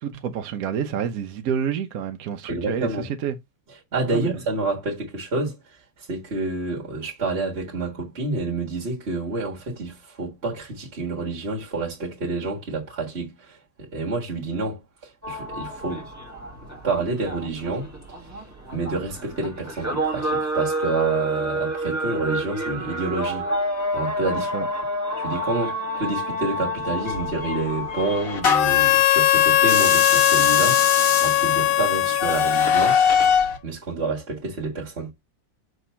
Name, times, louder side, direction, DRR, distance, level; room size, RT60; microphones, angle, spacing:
voice 1, 0.0-2.9 3.2-3.3 4.1-4.3 24.5-24.7, right 8 dB, 60° right, 1.0 m, -28 dB
voice 2, 2.5-3.1 3.9-5.6 6.0-16.1 16.8-17.9 18.7-23.5 23.9-24.5 25.2-33.2 33.6-35.1, right 3 dB, 35° right, 1.8 m, -28 dB
sound 1, 15.2-29.1, equal, 10° right, 1.2 m, -29 dB
sound 2, 27.1-28.9 29.6-33.6, left 6 dB, 50° left, 1.6 m, -23 dB
Harmonica, 28.5-33.4, left 13 dB, 85° left, 1.4 m, -20 dB
6.2 x 2.9 x 5.6 m
omnidirectional pair, 2.1 m